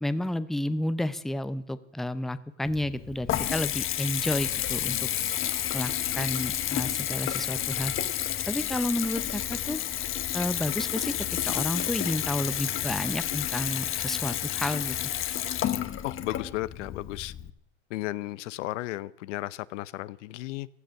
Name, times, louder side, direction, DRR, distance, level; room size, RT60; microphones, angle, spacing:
voice 1, 0.0-5.1 5.7-7.9 8.5-9.8 10.3-15.0, left 1 dB, ahead, 14 dB, 0.7 m, -31 dB
Water tap faucet / Bathtub (filling or washing) / Trickle dribble, 2.6-17.5, left 11 dB, 35° left, 1.1 m, -30 dB
voice 2, 16.0-17.3 17.9-20.7, left 17 dB, 75° left, 18 dB, 0.7 m, -34 dB
16.0 x 12.5 x 6.5 m, 0.75 s
supercardioid pair, 105°, 36 cm